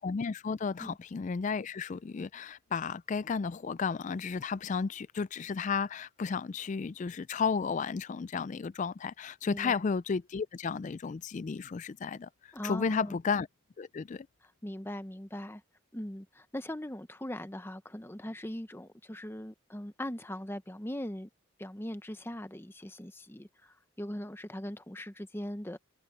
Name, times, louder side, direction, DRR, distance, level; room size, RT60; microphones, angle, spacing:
voice 1, 0.0-12.3 12.6-13.5 13.8-14.3, left 5 dB, 35° left, 0.3 m, -33 dB
voice 2, 9.5-9.8 12.5-13.2 14.6-15.6 15.9-21.3 21.6-25.8, left 1 dB, 10° left, 0.8 m, -40 dB
head